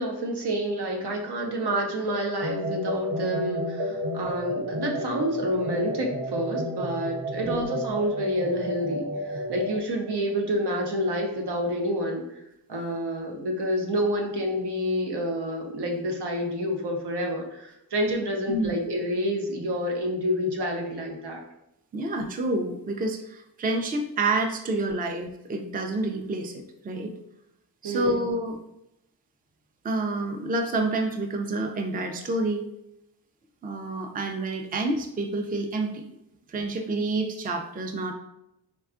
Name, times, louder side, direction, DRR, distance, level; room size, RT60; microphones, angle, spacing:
voice 1, 0.0-12.2 12.7-21.4 27.8-28.3, equal, 85° right, 1 dB, 0.7 m, -28 dB
sound 1, 2.4-9.8, equal, 50° right, 0.8 m, -31 dB
voice 2, 7.3-7.6 18.5-18.7 21.9-27.1 27.8-28.6 29.8-32.7 33.6-36.0 36.5-38.1, right 2 dB, 25° right, 4 dB, 0.3 m, -28 dB
3.5 x 2.2 x 2.4 m, 0.85 s
wide cardioid pair, 55°, 39 cm